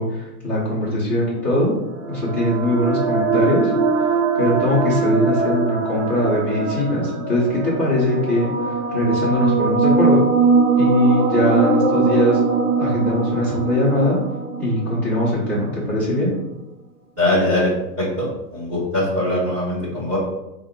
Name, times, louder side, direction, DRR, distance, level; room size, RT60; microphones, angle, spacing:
voice 1, 0.0-1.7 2.1-3.7 4.3-10.3 10.8-12.4 12.8-14.2 14.6-16.3, left 1 dB, 5° left, -11 dB, 0.9 m, -21 dB
sound 1, 1.5-15.6, right 4 dB, 50° right, 1.1 m, -21 dB
voice 2, 17.2-17.7 18.0-20.2, left 1 dB, 10° right, -13 dB, 0.5 m, -21 dB
4.2 x 2.5 x 4.4 m, 0.94 s
hypercardioid pair, 170°, 46 cm